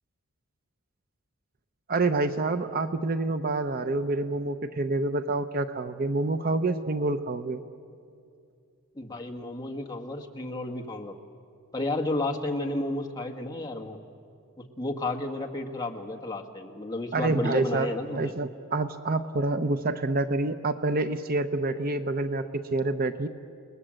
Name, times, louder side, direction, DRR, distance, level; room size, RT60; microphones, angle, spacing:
voice 1, 1.9-7.6 17.1-23.3, right 2 dB, 40° right, 9 dB, 0.7 m, -27 dB
voice 2, 8.9-11.1 11.7-14.0 14.6-18.3, left 2 dB, 15° left, 1 dB, 1.6 m, -32 dB
29.5 x 19.5 x 7.6 m, 2.4 s
head